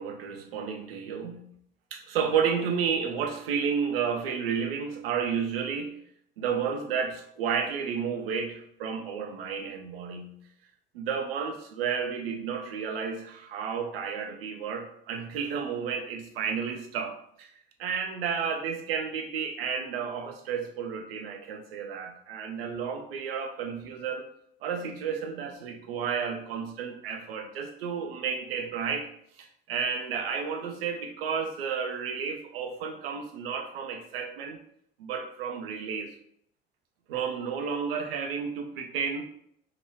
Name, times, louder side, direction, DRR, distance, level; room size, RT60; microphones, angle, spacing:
voice 1, 0.0-1.5 1.9-6.0 6.4-10.4 10.9-17.5 17.8-24.2 24.6-34.6 35.0-36.1 37.1-39.2, right 6 dB, 70° right, 6 dB, 0.5 m, -32 dB
3.0 x 2.9 x 2.9 m, 0.69 s
figure-of-eight pair, 55°, 30 cm